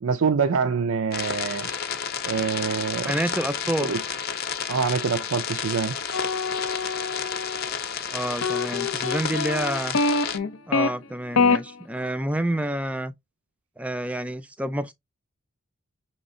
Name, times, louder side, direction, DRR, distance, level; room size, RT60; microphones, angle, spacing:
voice 1, 0.0-1.7 2.2-3.1 3.8-4.0 4.7-6.0, right 5 dB, 70° right, 0.4 m, -25 dB
sound 1, 1.1-10.4, left 7 dB, 45° left, 0.6 m, -31 dB
voice 2, 3.0-3.9 8.1-10.0 10.7-13.1 13.8-14.9, right 1 dB, 5° right, 0.4 m, -28 dB
sound 2, 6.1-7.7 8.4-10.9 11.4-11.6, left 4 dB, 85° left, 0.7 m, -25 dB
6.2 x 3.0 x 2.6 m
head